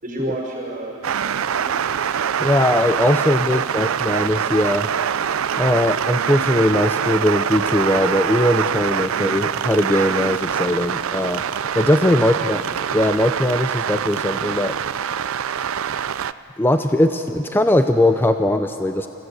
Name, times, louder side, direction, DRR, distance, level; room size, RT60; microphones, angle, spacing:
voice 1, 0.0-1.9 12.1-12.6, right 1 dB, 40° right, -1 dB, 5.5 m, -33 dB
sound 1, 1.0-16.3, right 8 dB, 75° right, 0.4 m, -24 dB
voice 2, 2.4-4.9 5.6-11.4 11.7-12.6 12.9-14.8 16.6-19.1, left 1 dB, 10° left, 7 dB, 0.5 m, -19 dB
26.5 x 15.5 x 8.0 m, 2.9 s
head